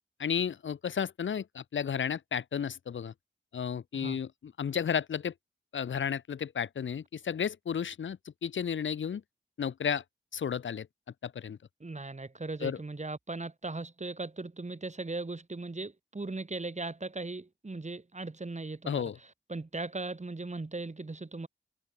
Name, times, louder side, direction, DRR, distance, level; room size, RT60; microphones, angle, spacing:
voice 1, 0.2-3.1 3.5-5.3 5.7-9.2 9.6-10.0 10.3-10.9 11.2-11.6 12.6-12.8 18.9-19.2, left 7 dB, 90° left, 1.2 m, -33 dB
voice 2, 11.8-19.1 19.5-21.5, right 3 dB, 40° right, 3.7 m, -38 dB
cardioid pair, 50°, 19 cm